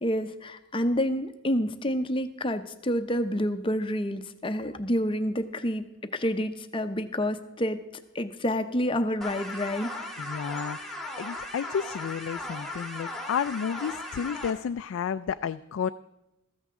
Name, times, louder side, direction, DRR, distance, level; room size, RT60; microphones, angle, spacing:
voice 1, 0.0-5.8 6.1-7.8 8.1-10.1, equal, 25° left, 9 dB, 0.6 m, -28 dB
sound 1, 9.2-14.5, left 2 dB, ahead, 1.3 m, -37 dB
voice 2, 10.2-15.9, left 7 dB, 75° left, 11 dB, 0.3 m, -32 dB
14.0 x 14.0 x 3.7 m, 0.94 s
head